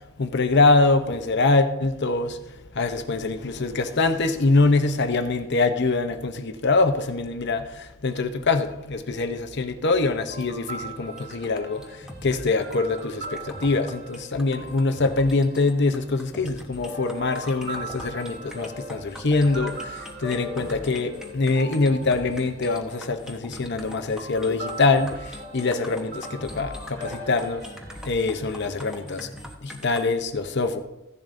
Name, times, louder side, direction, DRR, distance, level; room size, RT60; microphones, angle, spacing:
voice 1, 0.2-2.4 2.8-7.6 8.0-11.8 12.2-13.2 13.6-19.7 20.2-25.1 25.5-27.6 28.1-29.3 29.6-30.8, left 3 dB, 50° left, 7 dB, 0.7 m, -23 dB
sound 1, 10.1-16.1 16.8-29.1, right 1 dB, 50° right, 2.7 m, -40 dB
sound 2, 11.2-30.0, left 1 dB, 5° right, 1.0 m, -42 dB
15.0 x 11.0 x 2.6 m, 0.97 s
head